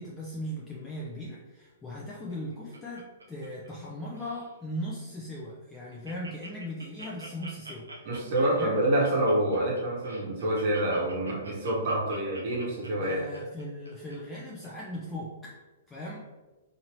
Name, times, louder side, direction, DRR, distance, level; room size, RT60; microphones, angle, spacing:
voice 1, 0.0-7.9 8.6-8.8 13.0-15.5 15.9-16.2, equal, 10° left, -6 dB, 0.6 m, -38 dB
Laughter, 2.1-3.9 4.1-4.5 5.0-5.1 5.4-5.5 5.7-14.1 14.6-14.7, right 2 dB, 85° right, 0.6 m, -47 dB
voice 2, 8.1-13.2, right 1 dB, 50° right, -3 dB, 1.0 m, -27 dB
2.8 x 2.7 x 3.0 m, 1.2 s
figure-of-eight pair, 115°, 0 cm